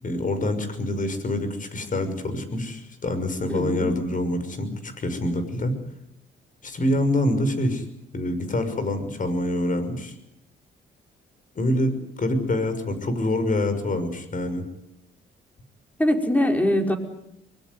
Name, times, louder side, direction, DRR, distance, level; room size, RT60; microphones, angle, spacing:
voice 1, 0.0-5.8 6.6-7.8 8.1-10.1 11.6-14.6, left 1 dB, 40° left, 10 dB, 6.0 m, -26 dB
voice 2, 3.5-4.0 16.0-17.0, left 1 dB, 10° left, 4 dB, 5.1 m, -22 dB
24.0 x 21.5 x 9.6 m, 0.81 s
cardioid pair, 90°, 20 cm